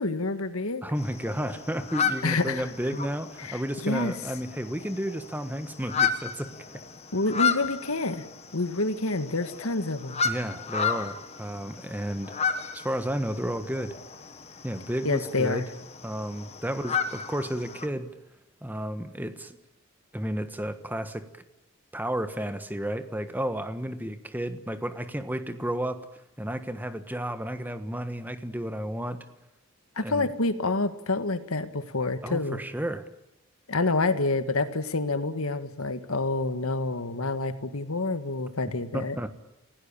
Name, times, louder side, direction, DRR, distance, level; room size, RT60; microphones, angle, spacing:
voice 1, 0.0-0.8 2.2-2.7 3.4-4.1 7.1-8.3 8.5-10.2 15.0-15.7 30.0-32.6 33.7-39.2, left 2 dB, 75° left, 10 dB, 1.8 m, -28 dB
voice 2, 0.8-6.5 10.2-12.4 12.7-13.9 14.6-15.7 16.0-18.1 18.6-19.6 20.1-21.3 21.9-26.0 26.4-29.2 30.0-30.3 32.2-33.0 38.9-39.3, equal, 10° right, 10 dB, 1.4 m, -32 dB
sound 1, 1.0-17.9, left 6 dB, 30° left, 1.7 m, -33 dB
30.0 x 17.0 x 8.8 m, 0.91 s
head